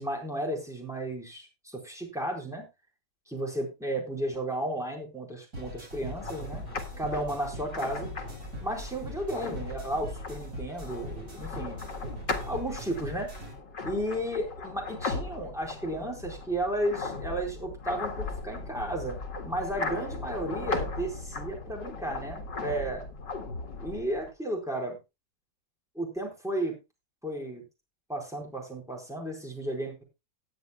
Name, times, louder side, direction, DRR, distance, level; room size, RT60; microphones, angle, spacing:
voice 1, 0.0-2.6 3.3-6.6 7.0-8.1 8.6-11.9 12.5-13.3 13.8-19.2 19.5-23.0 23.8-25.0 25.9-26.7 27.2-27.6 28.1-30.0, right 1 dB, ahead, 0 dB, 4.3 m, -33 dB
sound 1, 5.5-13.5, equal, 55° right, 4.8 m, -41 dB
sound 2, 6.0-24.3, left 3 dB, 75° left, 2.4 m, -38 dB
18.0 x 9.5 x 2.2 m, 0.25 s
omnidirectional pair, 1.9 m